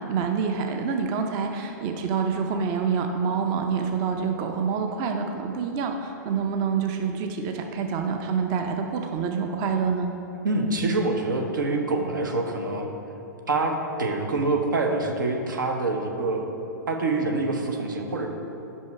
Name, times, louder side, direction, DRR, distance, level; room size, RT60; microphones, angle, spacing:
voice 1, 0.0-10.1, right 6 dB, 40° right, 4 dB, 0.5 m, -27 dB
voice 2, 10.4-12.9 13.5-13.7 14.0-16.5 16.9-18.3, right 3 dB, 85° right, 3 dB, 0.9 m, -25 dB
5.5 x 5.4 x 4.6 m, 3.0 s
hypercardioid pair, 120°, 10 cm